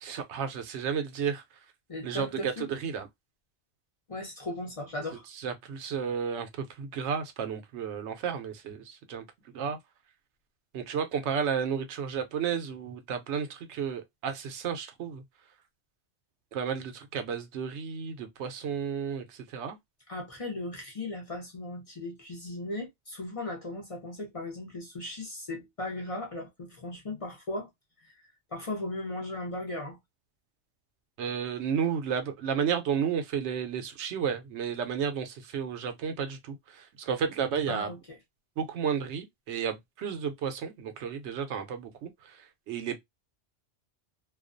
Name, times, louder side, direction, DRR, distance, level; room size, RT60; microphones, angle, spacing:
voice 1, 0.0-1.4 2.0-3.1 5.4-9.8 10.7-15.2 16.5-19.8 31.2-37.9 38.6-43.0, right 7 dB, 85° right, 0.9 m, -32 dB
voice 2, 1.9-2.7 4.1-5.3 20.1-27.7 28.0-30.0 37.7-38.0, left 2 dB, 35° left, 0.7 m, -37 dB
2.4 x 2.2 x 2.4 m
omnidirectional pair, 1.1 m